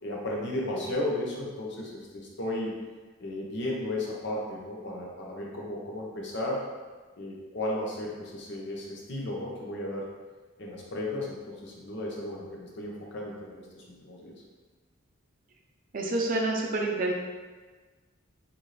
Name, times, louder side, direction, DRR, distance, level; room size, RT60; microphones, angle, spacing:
voice 1, 0.0-2.8 3.2-6.6 7.2-10.1 10.6-14.3, left 1 dB, 55° left, -3 dB, 0.8 m, -34 dB
voice 2, 15.9-17.1, right 2 dB, 40° right, 0 dB, 0.5 m, -28 dB
4.0 x 2.6 x 3.2 m, 1.3 s
head